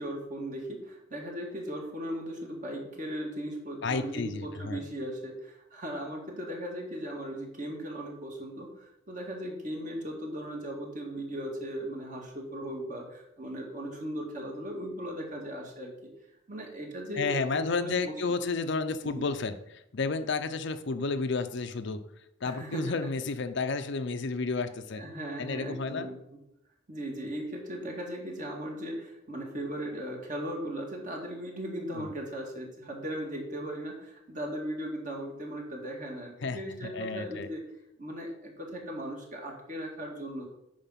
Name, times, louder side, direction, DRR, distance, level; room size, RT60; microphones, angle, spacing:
voice 1, 0.0-16.1 16.5-18.4 19.1-19.3 22.4-23.0 24.9-26.2 26.9-37.6 38.0-40.4, equal, 40° right, 0 dB, 2.2 m, -37 dB
voice 2, 3.8-4.8 17.2-22.0 22.4-25.0 25.4-26.1 31.9-32.1 36.4-36.6 36.9-37.5, left 4 dB, 60° left, 9 dB, 0.6 m, -31 dB
8.9 x 5.3 x 5.8 m, 0.80 s
head